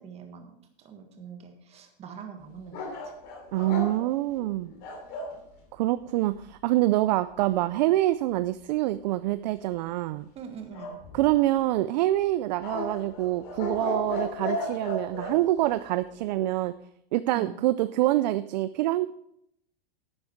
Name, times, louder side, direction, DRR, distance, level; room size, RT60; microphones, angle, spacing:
voice 1, 0.0-3.1 10.3-11.0 17.3-17.5, right 7 dB, 20° right, 4 dB, 1.5 m, -43 dB
sound 1, 2.7-5.4 10.7-11.6 12.6-15.4, left 2 dB, 45° left, 2.9 m, -35 dB
voice 2, 3.5-4.7 5.7-10.3 11.1-16.7 17.1-19.1, right 15 dB, 50° right, 14 dB, 0.4 m, -26 dB
11.0 x 8.7 x 4.6 m, 0.75 s
supercardioid pair, 155°, 29 cm